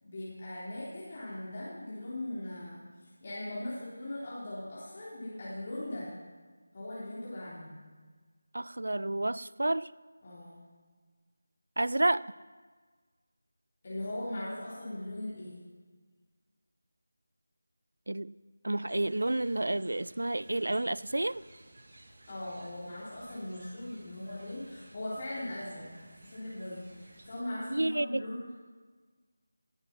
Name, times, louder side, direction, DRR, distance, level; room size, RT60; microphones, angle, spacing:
voice 1, 0.0-2.8 3.2-6.1 6.7-7.8 10.2-10.6 13.8-15.6 22.3-28.4, left 1 dB, 35° left, -9 dB, 3.5 m, -39 dB
voice 2, 8.5-9.9 11.8-12.3 18.1-18.4 18.6-21.4 27.7-28.2, right 1 dB, 70° right, 19 dB, 0.4 m, -30 dB
sound 1, 18.9-27.4, right 1 dB, 45° right, 1.6 m, -56 dB
17.5 x 7.9 x 5.9 m, 1.5 s
figure-of-eight pair, 165°, 0 cm